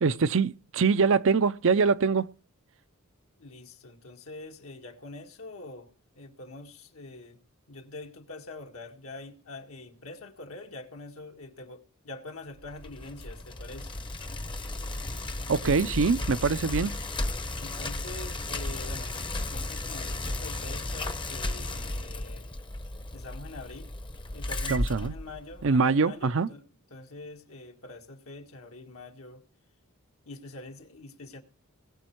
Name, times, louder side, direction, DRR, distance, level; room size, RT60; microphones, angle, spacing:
voice 1, 0.0-2.3 15.5-17.0 24.7-25.1 25.6-26.5, right 5 dB, 65° right, 0.6 m, -24 dB
voice 2, 3.4-7.4 7.7-14.0 17.6-22.5 23.1-23.9 24.3-26.6 26.9-29.4 30.3-31.4, left 2 dB, 75° left, 1.9 m, -44 dB
Bicycle, 12.6-25.8, left 2 dB, 20° left, 0.8 m, -34 dB
20.0 x 7.2 x 4.6 m
head